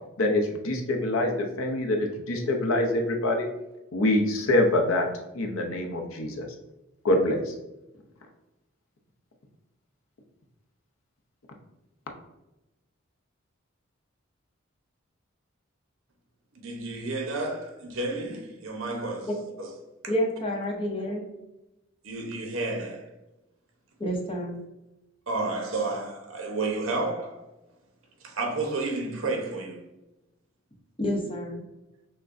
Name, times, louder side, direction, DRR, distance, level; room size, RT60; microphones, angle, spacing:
voice 1, 0.2-1.3 1.6-3.5 3.9-5.1 5.3-6.5 7.0-7.5, left 1 dB, 75° left, 0.7 m, -25 dB
voice 2, 16.5-19.3 19.6-19.7 22.0-23.1 25.3-27.5 28.2-29.8, right 2 dB, 70° right, 0.9 m, -31 dB
voice 3, 20.1-21.2 24.0-24.6 31.0-31.6, equal, 25° left, 0.8 m, -29 dB
5.9 x 2.2 x 2.5 m
head